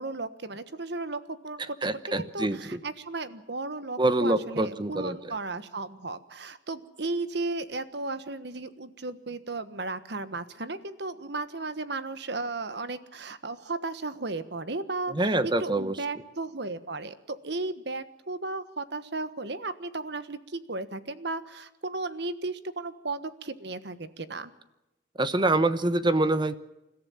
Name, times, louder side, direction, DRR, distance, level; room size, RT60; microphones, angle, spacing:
voice 1, 0.0-24.5, right 3 dB, 60° right, 12 dB, 1.4 m, -35 dB
voice 2, 1.8-2.8 4.0-5.3 15.1-16.0 25.2-26.6, right 2 dB, 25° right, 12 dB, 1.0 m, -25 dB
29.5 x 14.0 x 7.2 m, 0.95 s
head